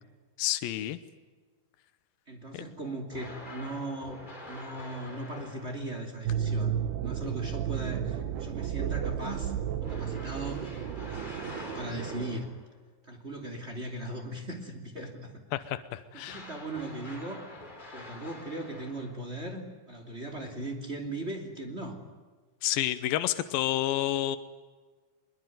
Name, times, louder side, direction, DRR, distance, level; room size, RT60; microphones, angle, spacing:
voice 1, 0.4-1.0 2.5-2.6 15.5-16.4 22.6-24.4, left 13 dB, 85° left, 12 dB, 2.0 m, -29 dB
voice 2, 2.3-4.2 4.5-9.5 9.8-12.5 13.0-15.3 16.1-17.4 17.9-22.0, right 1 dB, 20° right, 4 dB, 2.2 m, -38 dB
sound 1, 3.1-6.1 9.8-12.7 16.3-19.4, left 2 dB, 10° left, 3.6 m, -46 dB
sound 2, 6.2-12.4, right 9 dB, 70° right, 2.9 m, -33 dB
23.5 x 22.0 x 9.4 m, 1.4 s
omnidirectional pair, 5.5 m